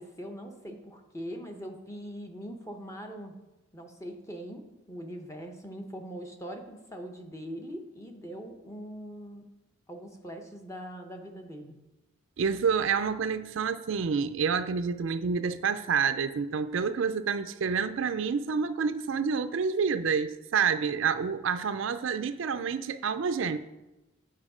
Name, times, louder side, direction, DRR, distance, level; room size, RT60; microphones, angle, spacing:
voice 1, 0.0-3.3 3.7-9.5 9.9-11.7, equal, 15° left, 0.8 m, -42 dB
voice 2, 12.4-23.6, right 6 dB, 70° right, 0.4 m, -28 dB
8.5 x 5.4 x 5.0 m
head